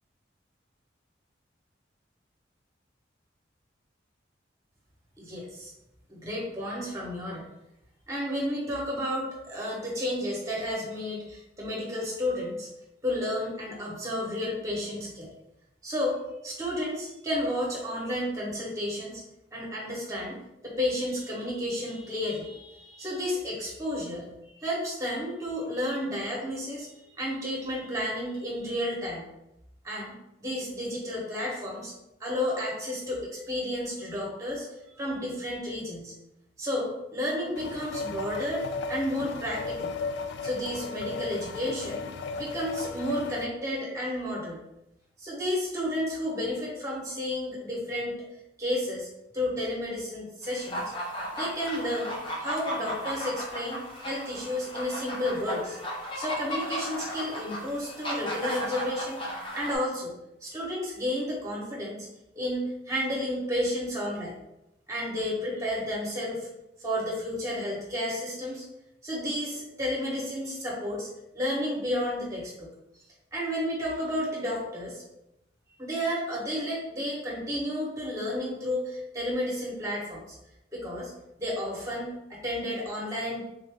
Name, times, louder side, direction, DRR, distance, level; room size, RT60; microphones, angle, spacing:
voice 1, 5.2-5.7 6.1-7.4 8.1-12.7 13.0-15.3 15.8-19.2 19.5-20.4 20.6-26.9 27.2-29.2 29.8-30.1 30.4-31.9 32.2-34.6 35.0-36.1 36.6-39.9 40.4-42.0 42.4-44.6 45.2-48.2 48.6-49.1 49.3-50.9 51.3-55.8 56.1-59.2 59.5-60.2 60.4-62.1 62.3-64.3 64.9-66.5 66.8-68.6 69.0-71.1 71.3-72.7 73.3-75.0 75.8-80.2 80.7-81.1 81.4-83.5, left 1 dB, 15° right, -4 dB, 1.2 m, -32 dB
sound 1, 37.6-43.5, left 4 dB, 65° left, 0.3 m, -35 dB
sound 2, 50.4-59.7, equal, 25° left, 0.6 m, -35 dB
3.7 x 2.8 x 3.5 m, 0.87 s
head